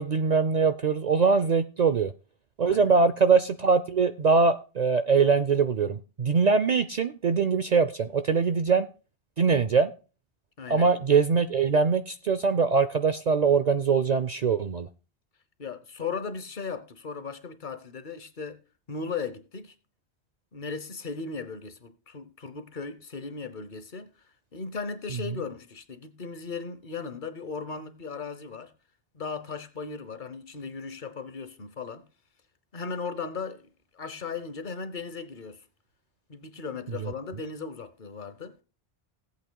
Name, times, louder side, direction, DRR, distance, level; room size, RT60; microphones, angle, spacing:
voice 1, 0.0-2.1 2.6-8.9 9.4-9.9 10.7-14.9 37.0-37.1, right 5 dB, 50° right, 0.5 m, -23 dB
voice 2, 2.7-3.1 10.6-10.9 15.6-18.6 18.9-19.7 20.5-24.1 24.5-28.7 29.1-32.0 32.7-33.7 33.9-35.6 36.3-38.6, left 5 dB, 50° left, 1.1 m, -37 dB
17.5 x 8.3 x 2.2 m
omnidirectional pair, 1.1 m